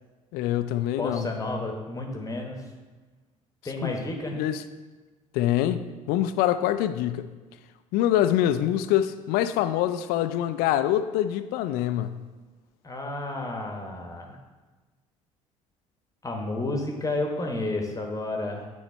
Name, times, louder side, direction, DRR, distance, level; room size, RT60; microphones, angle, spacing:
voice 1, 0.3-1.3 3.8-3.9 4.3-4.6 5.3-7.3 7.9-12.2, left 12 dB, 60° left, 11 dB, 0.4 m, -25 dB
voice 2, 1.0-2.6 3.6-4.4 12.8-14.4 16.2-18.7, left 2 dB, 20° left, 1 dB, 1.1 m, -31 dB
9.3 x 3.2 x 4.4 m, 1.3 s
figure-of-eight pair, 55°, 18 cm